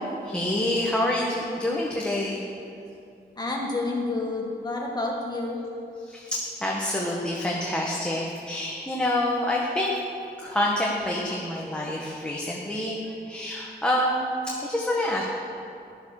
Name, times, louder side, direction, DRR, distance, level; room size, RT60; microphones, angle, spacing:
voice 1, 0.0-2.5 6.0-10.0 10.4-14.3 14.6-15.2, left 1 dB, 5° left, -4 dB, 1.5 m, -27 dB
voice 2, 3.4-5.6, left 2 dB, 25° left, -2 dB, 1.6 m, -29 dB
15.5 x 11.0 x 6.6 m, 2.6 s
wide cardioid pair, 165°, 17 cm